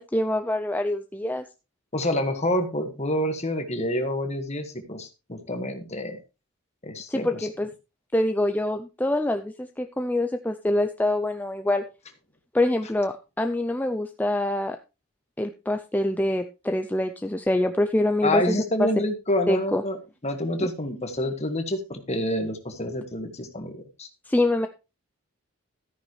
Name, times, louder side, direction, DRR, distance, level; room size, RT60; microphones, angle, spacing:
voice 1, 0.0-1.4 7.1-7.7 8.1-11.8 12.5-14.8 15.4-18.9 19.5-19.8 24.3-24.7, left 1 dB, 10° left, 7 dB, 0.5 m, -25 dB
voice 2, 1.9-6.2 6.8-7.5 18.2-20.0 20.2-24.1, left 1 dB, 30° left, 6 dB, 1.7 m, -28 dB
13.5 x 9.5 x 3.2 m, 0.29 s
head